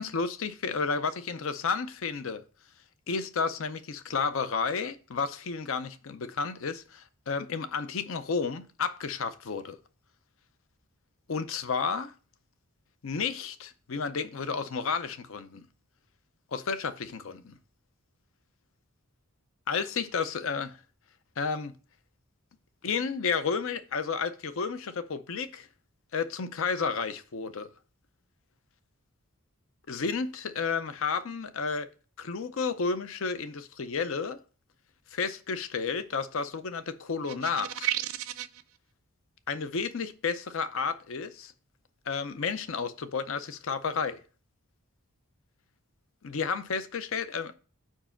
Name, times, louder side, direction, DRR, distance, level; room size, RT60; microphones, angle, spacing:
voice 1, 0.0-2.4 3.1-9.8 11.3-12.1 13.0-15.6 16.5-17.6 19.7-20.8 21.4-21.7 22.8-25.7 26.1-27.7 29.9-31.9 32.2-34.4 35.1-37.9 39.5-41.5 42.1-44.2 46.2-47.5, left 5 dB, 60° left, 0.5 m, -32 dB
sound 1, 37.3-38.6, right 13 dB, 70° right, 0.5 m, -32 dB
5.0 x 4.6 x 5.7 m
head